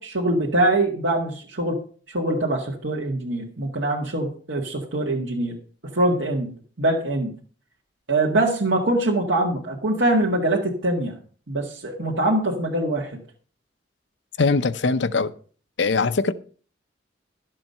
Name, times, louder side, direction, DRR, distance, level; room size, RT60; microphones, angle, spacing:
voice 1, 0.0-1.8 2.1-5.5 5.9-6.5 6.8-7.3 8.1-11.2 11.5-13.1, right 1 dB, 90° right, 1.9 m, -23 dB
voice 2, 14.4-15.3 15.8-16.3, left 4 dB, 75° left, 0.7 m, -21 dB
12.0 x 7.6 x 5.5 m
head